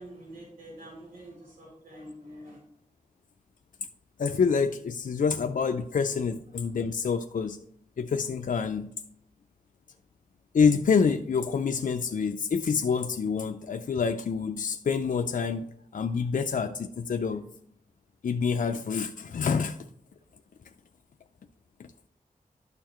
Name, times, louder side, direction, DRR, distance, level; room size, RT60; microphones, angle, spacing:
voice 1, 0.0-2.6, right 1 dB, 75° right, -3 dB, 3.1 m, -46 dB
voice 2, 4.2-7.6 8.0-8.9 10.5-15.7 15.9-17.4 18.2-19.8 21.8-21.9, left 5 dB, 65° left, 5 dB, 0.5 m, -27 dB
11.5 x 6.8 x 3.0 m, 0.71 s
wide cardioid pair, 80°, 15 cm